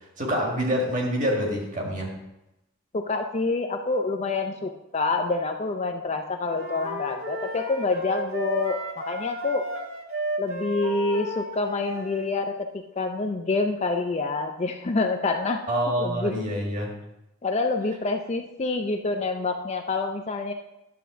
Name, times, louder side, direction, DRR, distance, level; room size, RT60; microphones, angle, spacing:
voice 1, 0.2-2.2 15.7-16.9, equal, 35° right, -1 dB, 1.7 m, -26 dB
voice 2, 2.9-9.7 10.4-12.7 13.0-15.6 16.0-16.4 17.4-20.5, left 3 dB, 30° left, 5 dB, 0.4 m, -27 dB
sound 1, 6.5-12.3, right 1 dB, 70° right, 1.4 m, -33 dB
10.0 x 3.7 x 6.8 m, 0.93 s
head